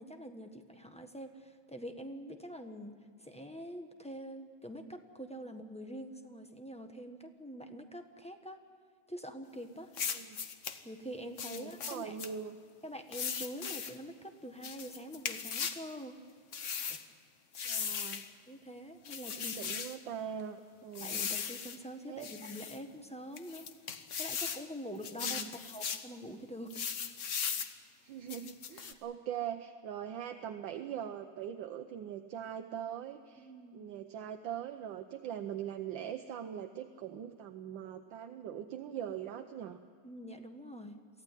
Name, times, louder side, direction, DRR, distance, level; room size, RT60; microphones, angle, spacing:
voice 1, 0.0-8.6 9.1-9.9 10.8-12.2 12.8-16.2 16.8-17.0 18.5-19.5 21.0-26.9 33.4-33.9 40.0-41.0, equal, 5° left, 5 dB, 1.0 m, -45 dB
sound 1, 9.9-10.8 11.4-12.3 13.1-14.0 14.6-15.8 16.5-17.0 17.5-18.3 19.0-20.0 21.0-21.8 22.2-22.8 23.4-24.6 25.0-26.1 26.7-27.7 28.3-28.9, left 7 dB, 50° left, 1.1 m, -38 dB
voice 2, 11.4-12.6 17.6-18.2 19.4-21.2 22.1-22.3 25.1-25.5 28.0-39.8, right 9 dB, 75° right, 6 dB, 1.5 m, -42 dB
23.5 x 15.5 x 9.9 m, 2.1 s
omnidirectional pair, 2.1 m